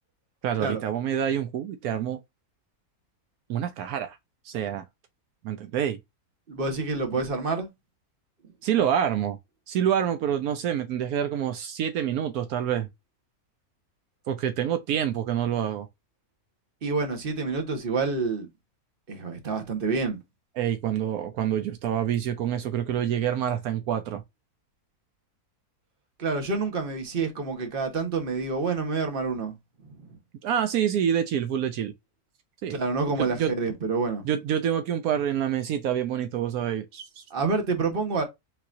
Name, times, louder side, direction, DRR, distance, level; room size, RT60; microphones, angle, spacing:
voice 1, 0.4-2.2 3.5-4.2 4.4-4.8 5.4-6.0 8.6-9.4 9.7-12.9 14.3-15.9 20.6-24.2 30.4-31.9 32.6-32.8 33.2-33.5 34.2-37.2, right 9 dB, 80° right, 1.1 m, -27 dB
voice 2, 6.5-7.7 16.8-18.5 19.1-20.2 26.2-29.5 30.0-30.1 32.7-34.2 37.3-38.2, right 4 dB, 40° right, 1.4 m, -28 dB
4.3 x 4.0 x 2.6 m
omnidirectional pair, 1.6 m